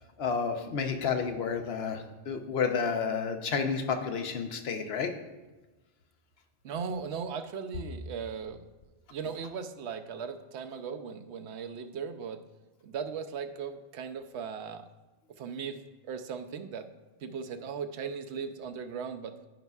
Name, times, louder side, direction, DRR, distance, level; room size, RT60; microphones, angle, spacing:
voice 1, 0.2-5.1, left 6 dB, 70° left, 6 dB, 1.0 m, -30 dB
voice 2, 6.6-8.7 9.1-12.4 12.8-14.9 15.4-16.9 17.2-19.4, right 6 dB, 90° right, 8 dB, 0.9 m, -38 dB
14.5 x 5.4 x 2.3 m, 1.1 s
omnidirectional pair, 1.1 m